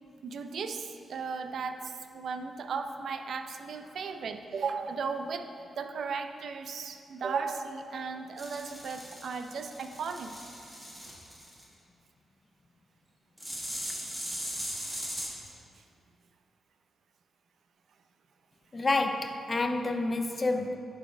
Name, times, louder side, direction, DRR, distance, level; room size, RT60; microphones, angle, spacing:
voice 1, 0.2-5.5 5.8-10.3, right 5 dB, 65° right, 7 dB, 0.5 m, -36 dB
sound 1, 8.4-11.6 13.4-15.3, equal, 5° right, 1.3 m, -39 dB
voice 2, 18.7-20.8, left 2 dB, 30° left, 7 dB, 0.5 m, -28 dB
11.0 x 4.0 x 5.1 m, 2.6 s
wide cardioid pair, 130°, 0 cm